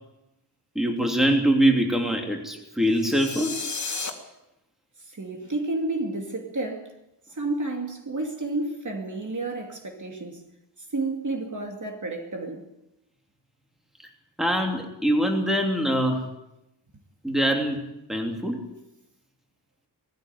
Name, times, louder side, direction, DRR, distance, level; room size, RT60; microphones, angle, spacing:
voice 1, 0.7-3.6 14.4-16.2 17.2-17.8 18.1-18.6, right 1 dB, ahead, 3.0 m, -23 dB
sound 1, 2.9-4.1, left 4 dB, 40° left, 2.7 m, -32 dB
voice 2, 5.0-7.0 7.3-10.4 10.9-12.7, right 2 dB, 40° right, 2.7 m, -31 dB
19.5 x 14.5 x 9.7 m
wide cardioid pair, 145°, 44 cm